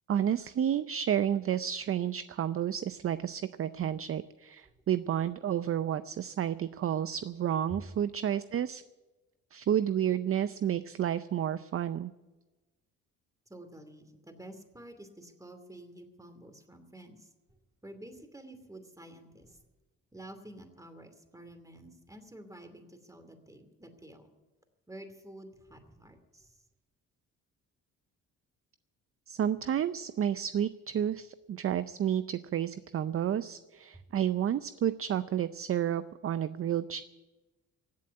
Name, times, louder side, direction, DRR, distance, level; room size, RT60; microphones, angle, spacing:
voice 1, 0.1-8.8 9.5-12.1 29.3-37.0, right 9 dB, 40° right, 15 dB, 0.5 m, -31 dB
voice 2, 13.5-17.3 17.8-19.6 20.1-24.3 24.9-26.6, right 1 dB, 10° right, 8 dB, 2.6 m, -49 dB
16.5 x 7.6 x 9.9 m, 1.2 s
supercardioid pair, 75°, 35 cm